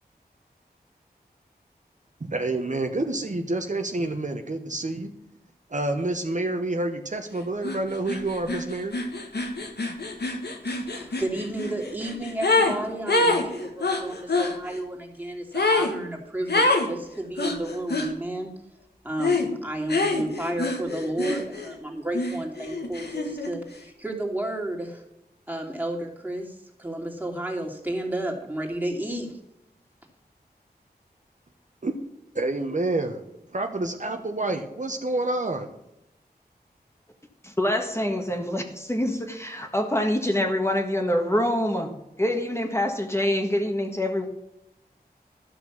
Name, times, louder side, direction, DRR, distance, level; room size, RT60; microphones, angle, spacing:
voice 1, 2.2-5.1 5.7-8.9 31.8-32.0 32.3-33.3 33.5-35.7, right 2 dB, 50° right, 5 dB, 1.1 m, -28 dB
sound 1, 7.6-7.8 8.1-12.8 13.1-14.5 15.5-15.9 16.5-16.9 17.4-18.1 19.2-19.5 19.9-21.7 22.1-23.5, left 2 dB, 85° left, 1.7 m, -25 dB
voice 2, 10.8-18.5 19.0-25.0 25.5-29.4, right 1 dB, 10° right, 1 dB, 2.7 m, -32 dB
voice 3, 37.4-41.9 42.2-44.3, left 1 dB, 15° left, 3 dB, 1.5 m, -25 dB
13.0 x 6.1 x 7.2 m, 0.87 s
wide cardioid pair, 75°, 17 cm